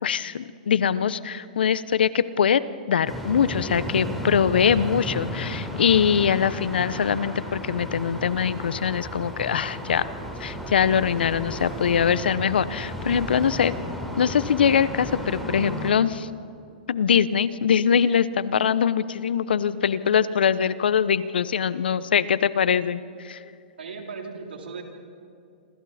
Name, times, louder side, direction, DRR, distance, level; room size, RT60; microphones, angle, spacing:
voice 1, 0.0-2.6 2.9-10.1 10.4-13.7 14.2-16.3 16.9-23.4, left 7 dB, 80° left, 16 dB, 0.9 m, -22 dB
sound 1, 3.1-15.9, equal, ahead, 3.6 m, -34 dB
voice 2, 23.8-24.8, right 4 dB, 85° right, 2 dB, 3.7 m, -37 dB
27.5 x 26.5 x 4.3 m, 2.6 s
hypercardioid pair, 130°, 5 cm